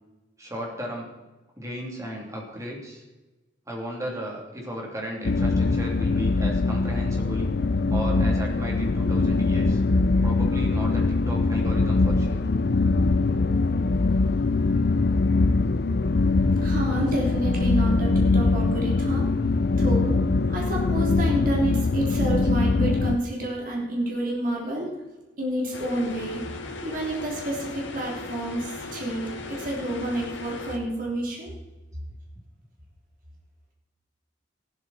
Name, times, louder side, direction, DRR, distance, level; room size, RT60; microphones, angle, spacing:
voice 1, 0.4-1.1 1.6-3.0 3.7-7.5 7.9-9.8 10.2-12.5, equal, 15° right, -1 dB, 3.1 m, -35 dB
sound 1, 5.2-23.2, left 3 dB, 55° left, 0.5 m, -22 dB
voice 2, 16.6-19.3 19.8-20.2 20.5-24.9 25.4-26.4 26.8-31.5, right 1 dB, 45° right, -3 dB, 3.3 m, -29 dB
sound 2, 25.7-30.8, left 3 dB, 85° left, 2.2 m, -37 dB
14.5 x 12.5 x 4.3 m, 1.1 s
head